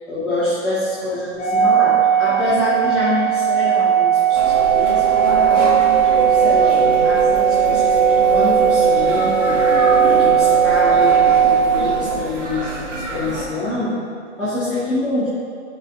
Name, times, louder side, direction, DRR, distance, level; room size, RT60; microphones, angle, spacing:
voice 1, 0.1-5.8 6.2-9.6 10.2-14.0 14.4-15.3, left 2 dB, 5° right, -18 dB, 1.0 m, -25 dB
Organ, 1.4-12.2, right 9 dB, 40° left, 1.7 m, -17 dB
sound 1, 4.2-12.2, right 3 dB, 45° right, 0.5 m, -22 dB
sound 2, 4.3-13.4, right 1 dB, 80° right, 2.0 m, -28 dB
16.0 x 5.4 x 2.6 m, 2.4 s
hypercardioid pair, 180°, 36 cm